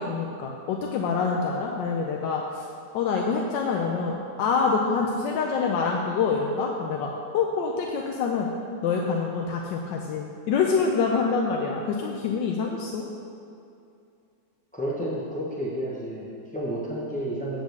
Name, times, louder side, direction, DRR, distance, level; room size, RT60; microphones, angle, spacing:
voice 1, 0.0-2.7 2.9-8.5 8.8-13.0, left 5 dB, 90° left, 0 dB, 1.4 m, -26 dB
voice 2, 14.7-17.6, right 1 dB, 10° left, -5 dB, 0.5 m, -31 dB
8.3 x 4.9 x 6.6 m, 2.5 s
omnidirectional pair, 1.9 m